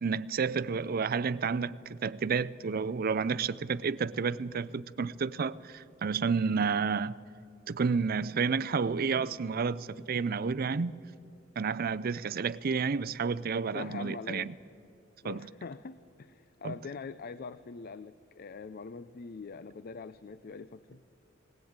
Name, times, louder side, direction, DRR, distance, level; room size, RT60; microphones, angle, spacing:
voice 1, 0.0-7.2 7.7-10.9 11.6-14.5 15.2-15.5 16.6-16.7, right 5 dB, 50° right, 0.5 m, -30 dB
voice 2, 13.7-14.6 15.2-21.0, left 4 dB, 50° left, 0.4 m, -43 dB
19.0 x 19.0 x 8.8 m
head